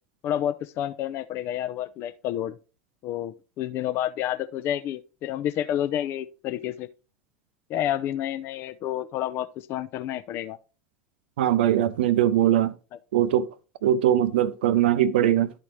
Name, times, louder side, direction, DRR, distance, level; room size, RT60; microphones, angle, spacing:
voice 1, 0.2-2.6 3.0-6.9 7.7-10.6, left 11 dB, 45° left, 0.5 m, -29 dB
voice 2, 11.4-12.8 13.1-13.5 13.8-15.5, right 11 dB, 70° right, 0.6 m, -21 dB
12.0 x 4.2 x 3.2 m
figure-of-eight pair, 75°, 6 cm